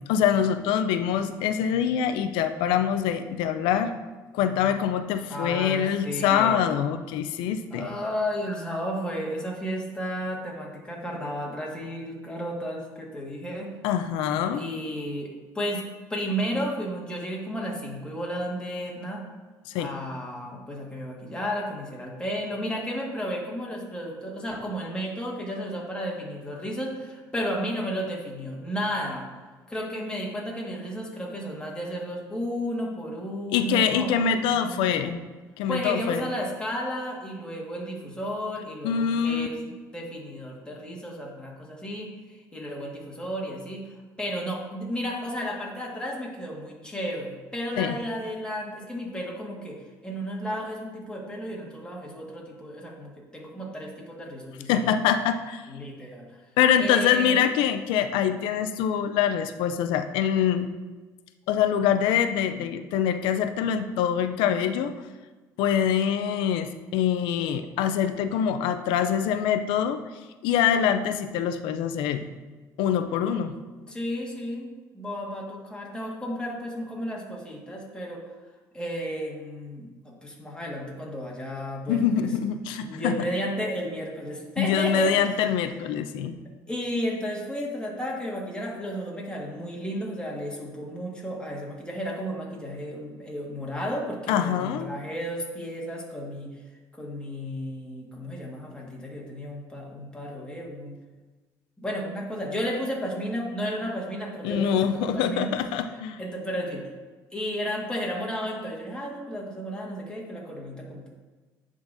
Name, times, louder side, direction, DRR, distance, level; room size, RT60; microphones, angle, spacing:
voice 1, 0.0-3.9 4.3-7.9 13.8-14.6 19.7-19.9 33.5-35.2 35.6-36.2 38.8-39.5 47.8-48.0 54.7-55.7 56.6-60.7 61.5-64.9 65.6-70.0 70.4-72.3 72.8-73.6 81.9-83.1 84.6-86.4 94.3-94.9 104.4-106.2, left 8 dB, 80° left, 9 dB, 0.4 m, -24 dB
voice 2, 5.3-6.7 7.7-13.7 14.5-15.3 15.5-15.8 16.1-19.2 19.7-29.3 29.7-35.2 35.7-39.6 39.9-43.9 44.2-49.8 50.0-54.9 55.7-56.3 56.8-57.4 73.9-78.2 78.7-82.3 82.8-85.4 86.7-96.5 96.9-100.9 101.8-105.5 105.9-106.8 107.3-111.1, equal, 10° left, -2 dB, 1.7 m, -33 dB
10.5 x 3.8 x 2.6 m, 1.3 s
supercardioid pair, 80°, 8 cm